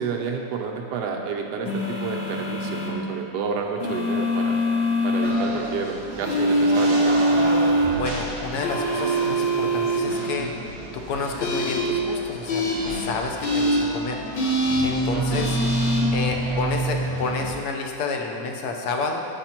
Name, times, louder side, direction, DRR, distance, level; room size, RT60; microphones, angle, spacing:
voice 1, 0.0-4.6 5.0-7.0 15.1-15.6, right 5 dB, 70° right, 2 dB, 1.2 m, -30 dB
sound 1, 1.7-2.9 3.8-5.3 6.3-7.9 8.6-10.0 11.4-11.8 12.5-12.7 13.4-13.8 14.4-14.8 15.3-16.0, equal, 80° left, 1.8 m, -23 dB
sound 2, 5.2-17.6, right 2 dB, 40° right, 0.4 m, -30 dB
voice 2, 7.9-10.5 10.9-14.2 14.8-15.6 16.1-19.3, left 4 dB, 65° left, 2 dB, 1.1 m, -30 dB
7.9 x 5.2 x 4.3 m, 2.6 s
omnidirectional pair, 2.0 m